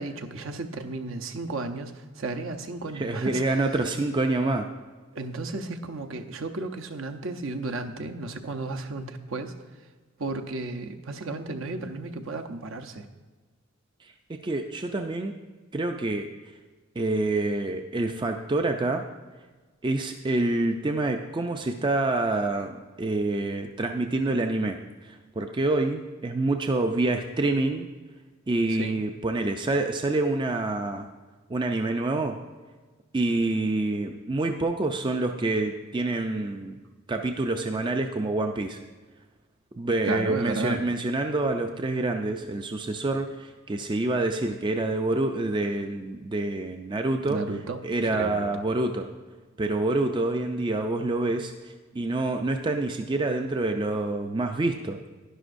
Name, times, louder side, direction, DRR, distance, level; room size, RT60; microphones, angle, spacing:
voice 1, 0.0-3.4 5.1-9.5 10.2-13.1 28.7-29.0 40.1-40.8 47.3-47.8 48.1-48.5, right 3 dB, 65° right, 5 dB, 0.7 m, -33 dB
voice 2, 2.9-4.7 14.3-15.4 15.7-16.3 17.0-19.0 19.8-27.9 28.5-31.1 31.5-32.4 33.1-36.8 37.1-38.8 39.8-47.4 47.8-49.1 49.6-55.0, right 2 dB, 20° right, 5 dB, 0.4 m, -27 dB
11.0 x 10.5 x 2.6 m, 1.3 s
head